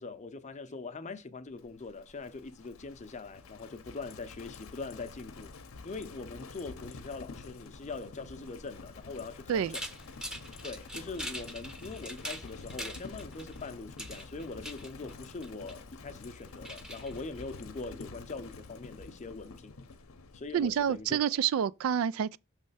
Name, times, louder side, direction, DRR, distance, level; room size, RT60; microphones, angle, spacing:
voice 1, 0.0-5.5 5.8-9.8 10.6-19.8 20.3-21.2, left 3 dB, 35° left, 0.6 m, -42 dB
Livestock farm animals working animals, 1.6-21.2, left 3 dB, 80° left, 0.7 m, -49 dB
sound 1, 9.7-18.0, equal, 5° right, 0.7 m, -44 dB
voice 2, 20.5-22.4, right 8 dB, 80° right, 0.3 m, -28 dB
6.3 x 3.3 x 5.5 m
head